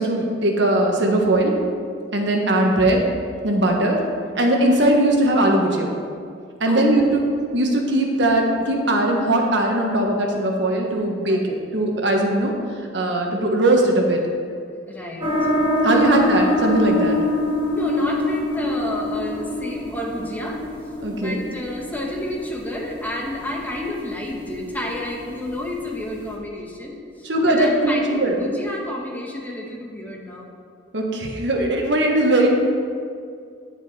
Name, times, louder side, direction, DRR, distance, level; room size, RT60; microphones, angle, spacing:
voice 1, 0.0-1.5 2.1-3.1 3.4-4.0 4.3-5.9 6.6-7.2 7.5-12.5 12.9-14.2 15.8-17.2 21.0-21.4 27.2-28.3 30.9-32.5, right 1 dB, 70° right, 1 dB, 1.4 m, -19 dB
voice 2, 14.9-15.3 15.9-16.0 17.7-20.6 21.1-30.5, left 1 dB, 10° left, -2 dB, 1.4 m, -30 dB
sound 1, 15.2-26.3, left 2 dB, 25° right, 2.0 m, -26 dB
9.7 x 9.7 x 4.3 m, 2.3 s
head